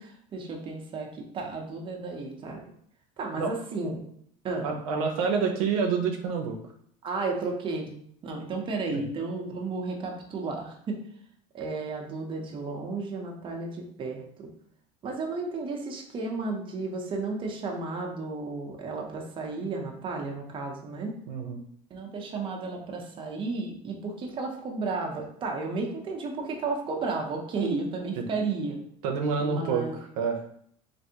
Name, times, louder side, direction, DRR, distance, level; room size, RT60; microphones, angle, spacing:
voice 1, 0.0-2.6 3.2-4.0 4.4-4.7 7.0-7.9 8.2-11.0 11.5-14.5 15.0-21.1 21.9-28.8 29.4-30.0, right 3 dB, 30° right, 1 dB, 0.7 m, -33 dB
voice 2, 4.6-6.6 8.9-9.0 21.3-21.6 28.2-28.3 29.0-29.9 30.2-30.4, right 5 dB, 85° right, 3 dB, 0.6 m, -27 dB
3.3 x 2.6 x 2.7 m, 0.66 s
supercardioid pair, 115°, 17 cm